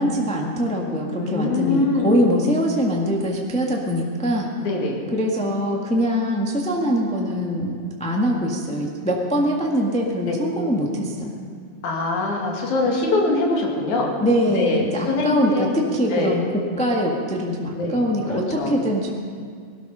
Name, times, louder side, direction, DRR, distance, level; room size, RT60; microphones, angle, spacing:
voice 1, 0.0-4.5 5.1-11.4 14.2-16.4 16.8-19.1, equal, 5° left, -1 dB, 0.6 m, -23 dB
voice 2, 1.1-2.4 4.6-5.0 10.3-10.4 11.8-14.2 14.5-15.7 16.1-16.3 17.8-18.7, left 2 dB, 85° left, 0 dB, 3.6 m, -23 dB
20.0 x 13.0 x 5.6 m, 2.1 s
omnidirectional pair, 3.3 m